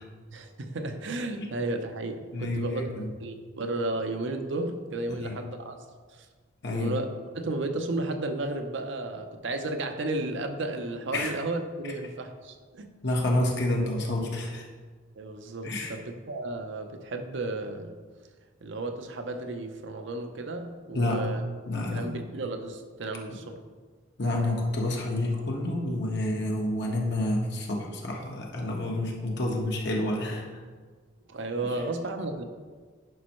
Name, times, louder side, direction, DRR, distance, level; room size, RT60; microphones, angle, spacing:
voice 1, 0.3-5.8 6.1-6.3 6.7-12.9 15.2-18.0 18.6-21.4 21.9-23.6 31.3-32.4, right 2 dB, 70° right, 6 dB, 0.7 m, -33 dB
voice 2, 2.3-3.1 5.2-5.4 6.6-6.9 11.1-11.3 13.0-14.7 15.6-16.0 20.9-21.3 21.7-22.1 24.2-30.5, left 1 dB, 60° left, -1 dB, 1.3 m, -29 dB
11.0 x 5.3 x 3.1 m, 1.5 s
head